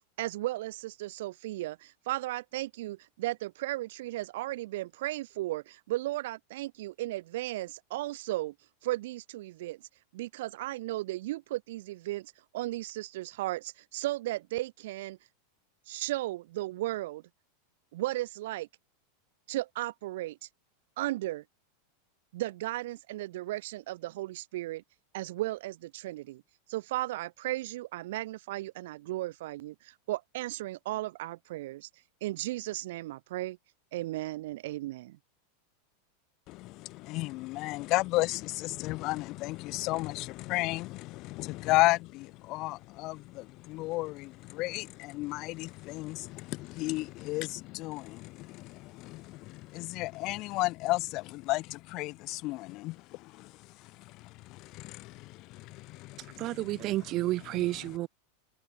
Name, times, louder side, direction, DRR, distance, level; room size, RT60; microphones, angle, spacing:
voice 1, 0.2-8.5 8.8-9.8 10.1-15.2 15.9-17.2 17.9-18.7 19.5-20.4 21.0-21.4 22.3-24.8 25.1-26.4 26.7-31.9 32.2-33.6 33.9-35.2, right 17 dB, 55° right, 3.0 m, -35 dB
voice 2, 36.5-53.5 54.5-56.3, left 21 dB, 30° left, 0.6 m, -33 dB
voice 3, 56.2-58.1, right 17 dB, 25° right, 2.0 m, -31 dB
supercardioid pair, 180°, 0 cm